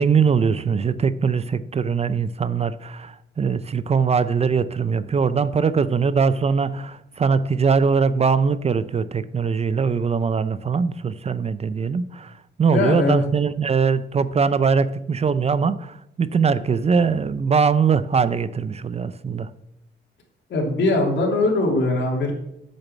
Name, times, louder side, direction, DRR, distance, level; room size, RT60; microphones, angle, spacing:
voice 1, 0.0-19.5, right 5 dB, 30° right, 15 dB, 0.5 m, -21 dB
voice 2, 12.7-13.2 20.5-22.3, left 2 dB, 65° left, 1 dB, 3.2 m, -21 dB
8.4 x 6.4 x 7.2 m, 0.84 s
cardioid pair, 90°, 20 cm